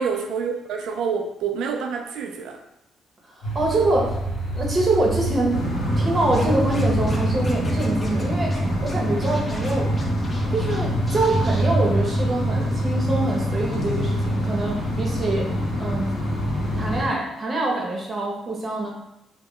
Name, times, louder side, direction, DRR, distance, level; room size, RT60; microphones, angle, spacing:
voice 1, 0.0-2.6, right 6 dB, 85° right, 4 dB, 0.3 m, -27 dB
voice 2, 3.3-4.2 4.5-5.6 6.0-8.5 8.8-9.9 10.5-15.5 15.8-16.1 16.8-18.9, right 2 dB, 35° right, -1 dB, 0.7 m, -25 dB
sound 1, 3.4-17.0, right 2 dB, 80° left, 0.8 m, -28 dB
sound 2, 5.5-17.1, left 1 dB, 50° left, 0.8 m, -26 dB
Scratching (performance technique), 6.3-7.2 7.4-8.2 8.5-8.6 8.9-10.8 11.1-11.6, left 1 dB, 25° left, 0.5 m, -41 dB
2.2 x 2.1 x 3.7 m, 0.85 s
cardioid pair, 90°, 0 cm